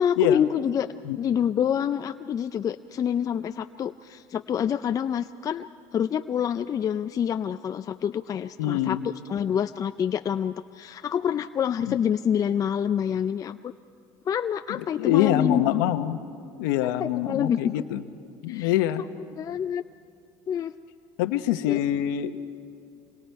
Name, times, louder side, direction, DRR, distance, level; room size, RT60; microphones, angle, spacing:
voice 1, 0.0-0.9 1.2-9.0 9.3-13.7 14.3-15.6 16.8-17.7 18.5-18.7 19.4-19.8 20.5-20.7 21.7-21.8, left 8 dB, 35° left, 9 dB, 0.4 m, -27 dB
voice 2, 8.6-9.0 11.9-12.0 14.7-16.2 16.6-18.0 18.4-19.0 21.2-22.4, left 12 dB, 85° left, 9 dB, 1.0 m, -25 dB
26.5 x 21.5 x 4.6 m, 2.4 s
supercardioid pair, 100°, 11 cm